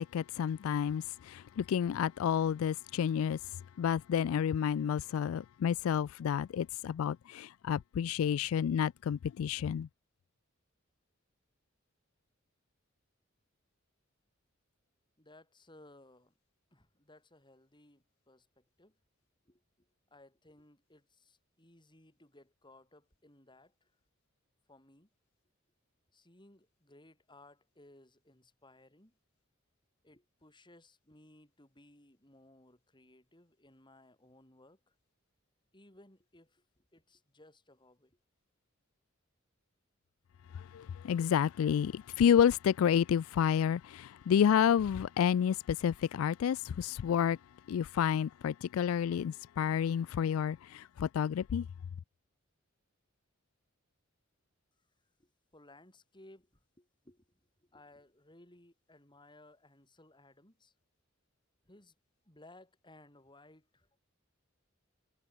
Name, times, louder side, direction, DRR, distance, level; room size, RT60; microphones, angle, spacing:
voice 1, 0.0-3.4 3.8-9.9 40.5-47.4 47.7-51.7, left 8 dB, 85° left, 0.3 m, -30 dB
voice 2, 15.2-16.3 16.7-19.0 19.4-23.9 24.7-25.1 26.1-29.2 30.0-34.9 35.7-38.2 55.2-60.7 61.6-61.9 62.2-64.0, left 1 dB, 25° left, 7.9 m, -60 dB
head